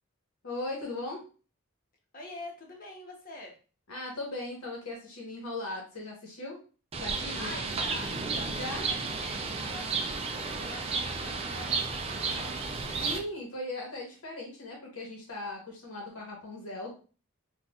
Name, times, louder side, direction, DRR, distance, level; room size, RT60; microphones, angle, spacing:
voice 1, 0.4-1.2 3.9-6.6 7.0-7.6 8.5-8.9 13.0-16.9, left 2 dB, 80° left, -1 dB, 1.0 m, -38 dB
voice 2, 2.1-3.5 7.3-12.5, left 2 dB, 40° left, 0 dB, 0.9 m, -45 dB
Bird, 6.9-13.2, right 4 dB, 25° right, 0.4 m, -33 dB
4.1 x 2.4 x 2.3 m, 0.37 s
head